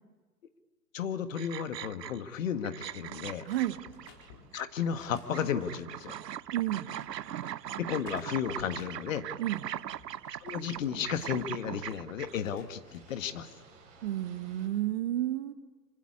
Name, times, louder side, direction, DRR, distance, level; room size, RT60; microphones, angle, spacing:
voice 1, 0.9-3.5 4.5-6.1 7.8-9.2 10.4-13.5, left 8 dB, 50° left, 10 dB, 1.6 m, -33 dB
sound 1, 1.3-2.3 2.6-5.0 5.3-12.4, right 11 dB, 80° right, 0.6 m, -40 dB
sound 2, 2.8-14.7, right 4 dB, 15° right, 7.2 m, -60 dB
sound 3, 3.4-5.9 6.6-7.6 7.9-9.2 9.7-11.9 12.2-13.3 13.7-14.1, left 4 dB, 30° left, 4.2 m, -58 dB
voice 2, 3.4-3.8 6.5-6.9 9.4-9.6 14.0-15.5, right 13 dB, 35° right, 12 dB, 1.1 m, -31 dB
26.0 x 16.0 x 9.7 m, 1.4 s
figure-of-eight pair, 125°, 49 cm